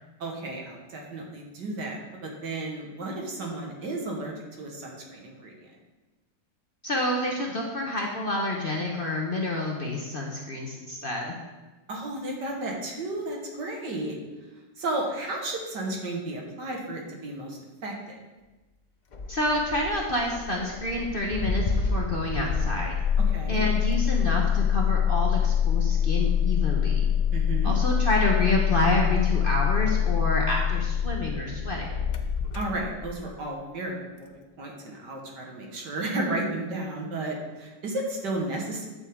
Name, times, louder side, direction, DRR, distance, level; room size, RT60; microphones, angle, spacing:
voice 1, 0.2-5.7 11.9-14.2 14.8-18.2 23.3-23.6 27.3-27.7 32.5-38.9, right 2 dB, 70° right, 0 dB, 2.2 m, -33 dB
voice 2, 6.8-11.3 19.3-22.9 23.5-27.1 27.6-31.9, left 1 dB, 35° left, -1 dB, 1.0 m, -28 dB
Engine starting, 19.1-33.3, left 7 dB, 75° left, 0.4 m, -25 dB
11.5 x 6.9 x 3.7 m, 1.2 s
omnidirectional pair, 1.9 m